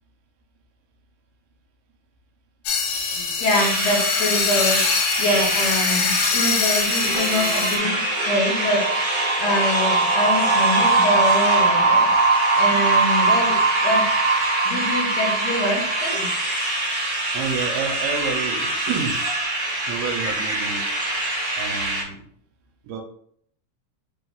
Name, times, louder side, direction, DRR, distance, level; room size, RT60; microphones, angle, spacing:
sound 1, 2.7-7.8, left 5 dB, 90° left, 2.4 m, -24 dB
voice 1, 3.1-12.1 12.6-14.1 14.6-16.3, left 1 dB, 70° left, -3 dB, 1.7 m, -25 dB
sound 2, 3.5-22.0, right 1 dB, 40° right, 1.3 m, -26 dB
sound 3, 7.1-16.6, right 3 dB, 60° right, 2.4 m, -21 dB
voice 2, 17.3-19.2 19.9-21.0 21.6-22.3 22.8-23.0, right 5 dB, 80° right, 2 dB, 2.3 m, -29 dB
5.3 x 2.3 x 3.6 m, 0.65 s
omnidirectional pair, 3.8 m